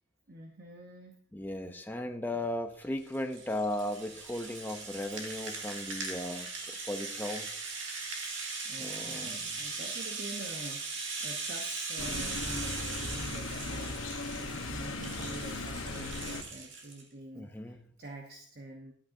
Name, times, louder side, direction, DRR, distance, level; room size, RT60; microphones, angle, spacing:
voice 1, 0.3-1.2 2.3-2.5 8.6-18.9, right 2 dB, 50° right, 3 dB, 0.8 m, -47 dB
voice 2, 1.3-7.5 8.6-9.5 17.3-17.8, left 1 dB, 10° left, 5 dB, 0.6 m, -36 dB
Rattle (instrument), 2.8-17.0, right 4 dB, 70° right, 2.0 m, -39 dB
sound 1, 12.0-16.4, left 3 dB, 80° left, 1.0 m, -38 dB
12.5 x 8.5 x 2.6 m, 0.62 s
head